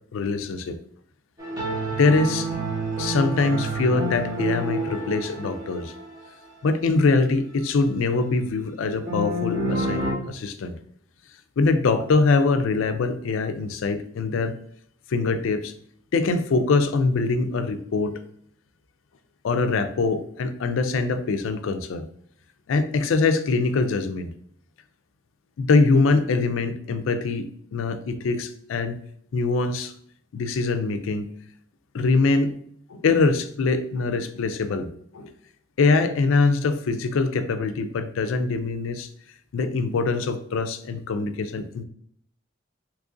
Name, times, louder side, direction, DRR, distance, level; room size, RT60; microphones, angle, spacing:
voice 1, 0.1-0.8 1.9-2.5 3.0-5.9 6.6-10.7 11.6-14.5 15.1-15.7 16.1-18.1 19.4-22.0 22.7-24.3 25.6-29.0 29.3-29.9 30.3-31.3 31.9-32.5 32.9-35.3 35.8-39.1 39.5-41.8, left 3 dB, 80° left, 10 dB, 0.4 m, -23 dB
sound 1, 1.4-6.2 9.1-10.1, right 1 dB, 20° right, 1.1 m, -28 dB
2.9 x 2.6 x 3.6 m, 0.66 s
head